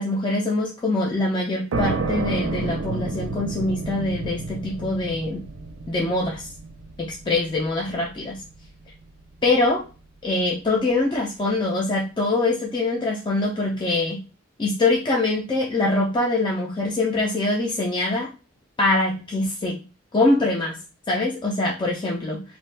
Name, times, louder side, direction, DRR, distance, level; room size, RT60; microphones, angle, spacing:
voice 1, 0.0-5.4 5.9-6.5 7.0-8.4 9.4-9.9 10.2-14.2 14.6-18.3 18.8-19.8 20.1-20.8 21.1-22.4, left 2 dB, 25° left, -2 dB, 0.4 m, -23 dB
sound 1, 1.7-9.1, right 3 dB, 75° right, 0.5 m, -31 dB
2.5 x 2.2 x 3.2 m, 0.31 s
head